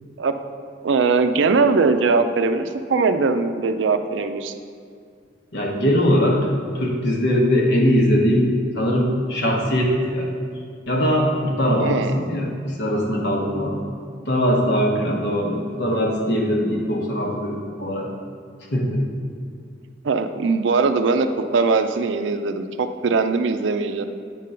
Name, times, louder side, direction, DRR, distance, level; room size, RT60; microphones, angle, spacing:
voice 1, 0.8-4.5 11.8-12.1 20.0-24.1, right 4 dB, 80° right, 9 dB, 0.4 m, -20 dB
voice 2, 5.5-6.4 6.7-8.5 8.7-10.3 10.9-12.5 12.8-13.8 14.3-18.1 18.7-19.0, equal, 65° left, -1 dB, 1.2 m, -21 dB
8.2 x 3.8 x 5.6 m, 2.2 s
head